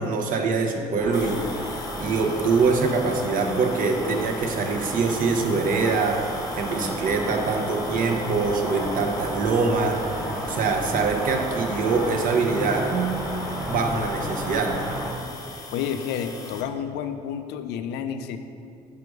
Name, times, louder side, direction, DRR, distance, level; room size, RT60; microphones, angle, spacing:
voice 1, 0.0-10.2 10.5-13.2 13.7-14.8, right 4 dB, 55° right, 3 dB, 0.7 m, -24 dB
sound 1, 1.0-15.1, equal, 5° right, 0.9 m, -32 dB
sound 2, 1.1-16.6, left 3 dB, 20° left, 0.7 m, -41 dB
voice 2, 15.7-18.4, left 8 dB, 85° left, 9 dB, 0.4 m, -30 dB
5.1 x 4.9 x 4.7 m, 2.5 s
cardioid pair, 110°, 17 cm